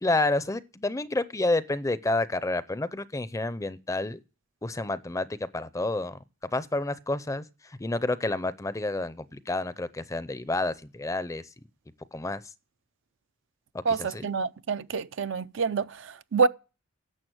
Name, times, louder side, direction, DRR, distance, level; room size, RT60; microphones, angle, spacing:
voice 1, 0.0-4.2 4.6-6.2 6.5-11.4 12.1-12.4 13.9-14.3, left 2 dB, 15° left, 0.5 m, -29 dB
voice 2, 13.9-16.5, right 5 dB, 65° right, 0.5 m, -27 dB
11.0 x 7.0 x 7.8 m
head